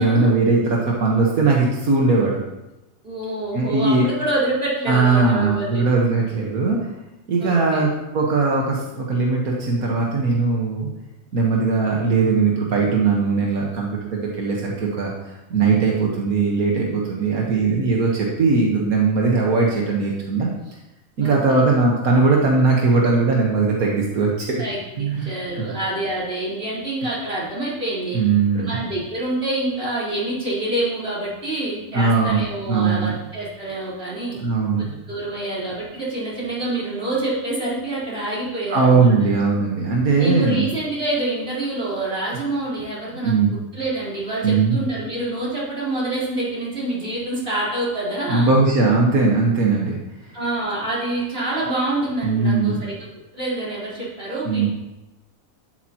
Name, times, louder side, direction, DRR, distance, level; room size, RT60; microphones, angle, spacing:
voice 1, 0.0-2.4 3.5-4.1 4.9-6.8 7.3-10.9 11.3-20.5 21.2-24.6 25.0-25.3 25.6-25.7 28.1-28.7 31.9-32.4 32.7-33.1 34.4-34.9 38.7-40.7 43.2-43.5 44.4-44.8 48.3-50.0 52.2-52.8 54.4-54.7, right 4 dB, 85° right, -2 dB, 1.9 m, -19 dB
voice 2, 3.0-5.9 7.4-7.9 17.1-17.8 21.2-21.6 24.6-28.2 28.5-34.4 35.1-39.1 40.2-43.3 43.7-48.5 50.3-53.1 53.3-54.7, right 2 dB, 40° right, -8 dB, 4.7 m, -27 dB
12.0 x 11.0 x 3.0 m, 0.97 s
omnidirectional pair, 1.5 m